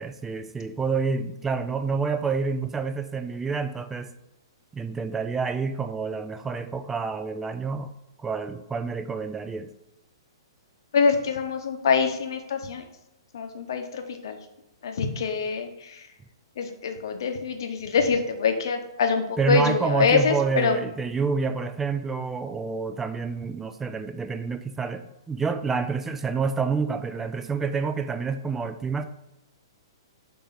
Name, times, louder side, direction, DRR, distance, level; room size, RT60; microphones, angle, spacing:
voice 1, 0.0-4.1 4.7-7.9 8.2-9.7 19.4-29.1, right 5 dB, 10° right, 9 dB, 0.4 m, -28 dB
voice 2, 10.9-12.8 13.3-14.4 14.8-16.0 16.6-20.8, left 5 dB, 60° left, 6 dB, 0.9 m, -25 dB
6.8 x 2.8 x 5.7 m, 0.93 s
figure-of-eight pair, 115°, 2 cm